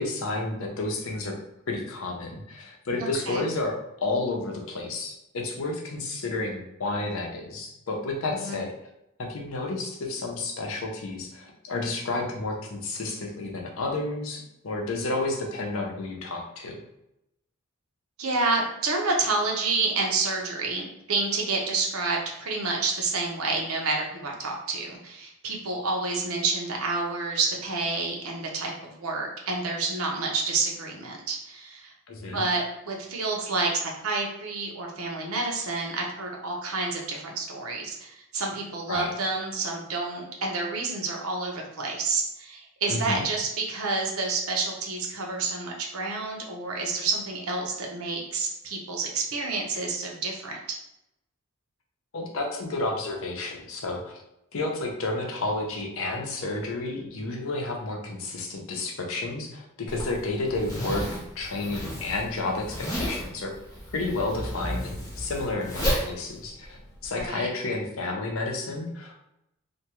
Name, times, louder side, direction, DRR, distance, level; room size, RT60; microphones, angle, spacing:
voice 1, 0.0-1.3 1.7-8.7 9.2-16.8 32.1-32.4 38.9-39.1 42.9-43.2 52.1-54.2 54.5-61.1 61.4-63.5 63.9-69.2, left 2 dB, 70° left, 1 dB, 0.6 m, -31 dB
voice 2, 3.0-3.4 8.4-8.6 18.2-31.9 32.3-33.7 34.0-50.8 67.1-67.5, right 3 dB, 90° right, 0 dB, 0.7 m, -29 dB
Zipper (clothing), 59.9-67.3, equal, 20° left, 0.9 m, -32 dB
2.6 x 2.2 x 2.9 m, 0.85 s
head